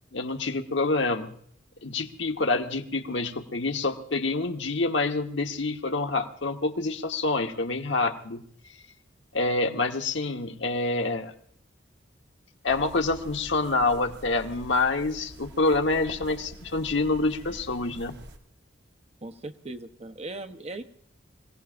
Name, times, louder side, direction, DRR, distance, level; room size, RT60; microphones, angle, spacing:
voice 1, 0.1-1.3 1.8-8.4 9.3-11.3 12.6-18.2, left 3 dB, 70° left, 4 dB, 1.3 m, -27 dB
sound 1, 12.7-18.4, right 1 dB, 60° right, 1.4 m, -46 dB
voice 2, 19.2-20.8, right 2 dB, 35° right, 8 dB, 0.9 m, -38 dB
27.0 x 17.0 x 2.6 m, 0.64 s
head